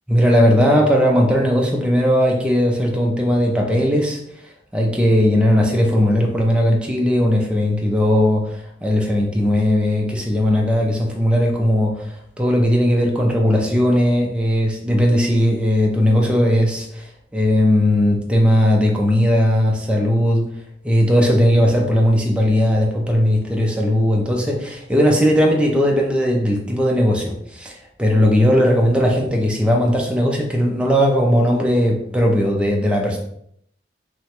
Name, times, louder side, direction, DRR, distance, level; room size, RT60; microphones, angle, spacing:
voice 1, 0.1-4.2 4.7-20.5 20.8-33.2, equal, 5° right, -1 dB, 0.4 m, -18 dB
3.0 x 2.2 x 2.9 m, 0.71 s
head